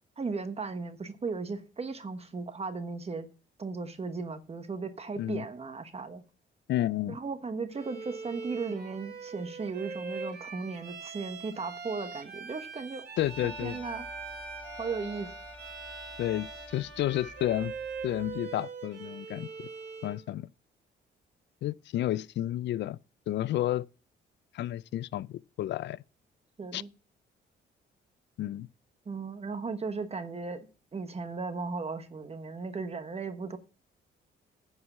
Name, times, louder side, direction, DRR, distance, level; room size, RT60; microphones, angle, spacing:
voice 1, 0.2-3.3 3.6-6.2 7.1-13.0 13.4-14.1 14.8-15.3 26.6-26.9 29.0-33.6, right 4 dB, 30° right, 1.2 m, -36 dB
voice 2, 6.7-7.2 13.2-13.8 16.2-17.7 18.0-19.7 20.0-20.5 21.6-23.0 23.3-23.9 24.5-26.0 26.7-26.8 28.4-28.7, left 13 dB, 65° left, 0.4 m, -31 dB
Bowed string instrument, 7.7-20.2, right 5 dB, 55° right, 2.4 m, -42 dB
sound 1, 13.2-18.4, left 2 dB, 5° left, 3.5 m, -47 dB
9.8 x 4.8 x 7.1 m
cardioid pair, 90°, 20 cm